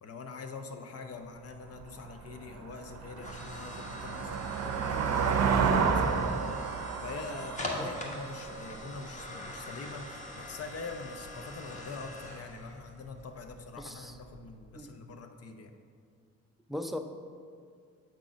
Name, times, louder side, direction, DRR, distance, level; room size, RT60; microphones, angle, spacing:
voice 1, 0.0-6.3 7.0-15.7, left 4 dB, 55° left, 6 dB, 0.7 m, -44 dB
sound 1, 1.8-1.9 2.4-9.0, right 6 dB, 60° right, 0.6 m, -30 dB
sound 2, 2.1-14.7, equal, 25° left, 1.2 m, -44 dB
voice 2, 13.8-14.1 14.7-15.0 16.7-17.0, left 1 dB, ahead, 5 dB, 0.4 m, -38 dB
7.5 x 3.8 x 5.1 m, 2.1 s
cardioid pair, 90°, 30 cm